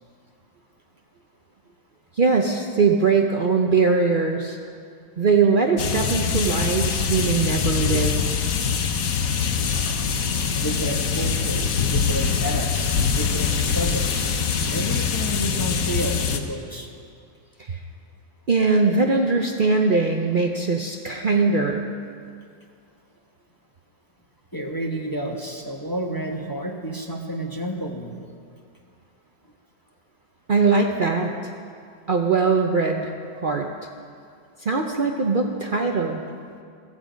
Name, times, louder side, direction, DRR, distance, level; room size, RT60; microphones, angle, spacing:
voice 1, 2.2-4.6 5.2-8.2 17.6-17.8 18.5-21.8 30.5-31.5 32.1-33.1 33.4-33.7 34.6-36.2, right 4 dB, 90° right, 2 dB, 0.4 m, -21 dB
sound 1, 5.8-16.4, left 6 dB, 55° left, 1.2 m, -24 dB
voice 2, 10.6-16.9 24.5-28.2, equal, 15° left, 0 dB, 0.8 m, -30 dB
15.5 x 15.0 x 5.2 m, 2.3 s
omnidirectional pair, 2.0 m